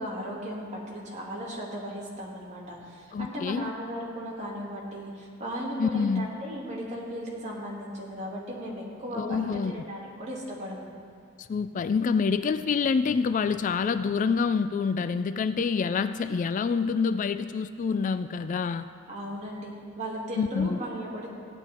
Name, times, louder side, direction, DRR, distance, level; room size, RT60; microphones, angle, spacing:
voice 1, 0.0-10.8 19.1-19.7 20.0-21.3, equal, 35° right, -4 dB, 2.6 m, -36 dB
voice 2, 3.1-3.7 5.8-6.3 9.1-9.8 11.4-18.9 20.4-20.8, left 5 dB, 40° left, 12 dB, 0.3 m, -27 dB
16.0 x 9.8 x 4.4 m, 2.3 s
head